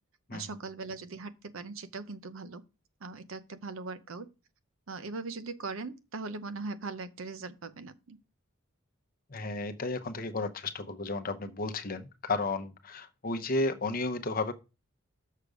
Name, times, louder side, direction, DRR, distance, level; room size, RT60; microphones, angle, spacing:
voice 1, 0.3-2.6 3.0-4.3 4.9-8.2, right 3 dB, 70° right, 0.7 m, -40 dB
voice 2, 9.3-14.5, left 2 dB, 45° left, 0.8 m, -33 dB
6.7 x 6.6 x 4.9 m
head